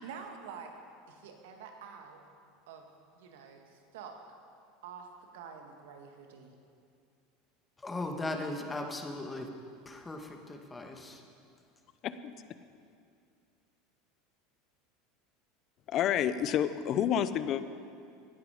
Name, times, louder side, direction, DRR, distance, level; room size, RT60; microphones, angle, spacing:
voice 1, 0.0-0.7 1.1-2.2 2.7-2.9 3.1-4.2 4.8-5.1 5.3-6.5 8.2-8.7, right 6 dB, 75° right, 1.8 m, -47 dB
voice 2, 7.8-9.5 9.8-11.2, left 2 dB, 15° left, 1.7 m, -38 dB
voice 3, 15.9-17.6, left 9 dB, 50° left, 0.7 m, -29 dB
17.0 x 10.5 x 5.0 m
hypercardioid pair, 90°, 0 cm